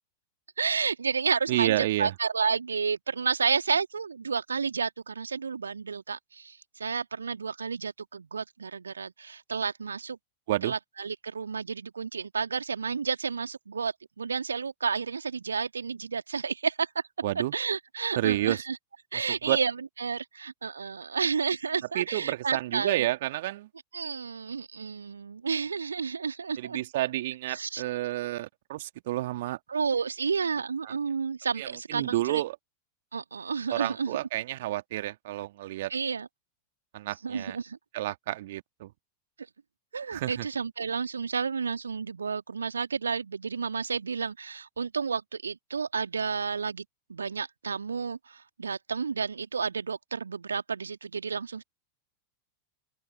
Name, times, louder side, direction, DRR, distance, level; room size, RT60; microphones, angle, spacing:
voice 1, 0.6-10.2 10.6-17.0 17.4-18.8 19.1-23.1 23.9-26.8 27.5-27.8 29.7-32.4 33.1-34.1 35.9-36.3 37.2-37.8 39.9-46.8 47.1-51.6, right 5 dB, 75° right, 1.6 m, -31 dB
voice 2, 1.5-2.1 10.5-10.7 17.2-17.5 18.2-18.6 19.1-19.6 21.9-23.7 26.6-29.6 30.8-30.9 31.6-32.6 33.7-35.9 36.9-37.6 37.9-38.9 40.1-40.5, right 15 dB, 55° right, 2.1 m, -30 dB
open air
figure-of-eight pair, 90°, 0 cm